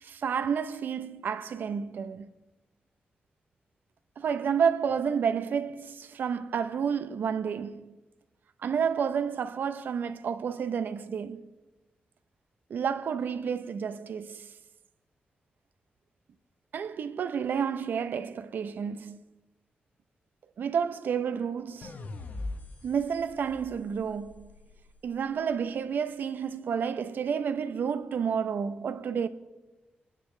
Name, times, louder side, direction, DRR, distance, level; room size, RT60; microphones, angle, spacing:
voice 1, 0.0-2.3 4.2-7.9 8.6-11.5 12.7-14.5 16.7-19.2 20.6-22.0 22.8-24.5 25.0-29.3, right 7 dB, 75° right, 0.7 m, -30 dB
sound 1, 21.8-25.1, left 2 dB, 55° left, 1.0 m, -42 dB
26.5 x 10.0 x 3.3 m
wide cardioid pair, 160°, 3 cm